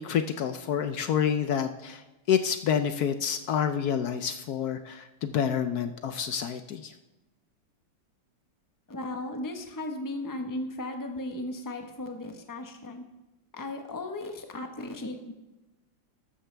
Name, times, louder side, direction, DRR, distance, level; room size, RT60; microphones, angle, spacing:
voice 1, 0.0-2.0 2.3-6.9, left 8 dB, 65° left, 9 dB, 1.0 m, -28 dB
voice 2, 8.9-13.0 13.5-15.3, left 2 dB, 15° left, 4 dB, 0.9 m, -36 dB
14.0 x 12.5 x 3.4 m, 1.1 s
omnidirectional pair, 2.1 m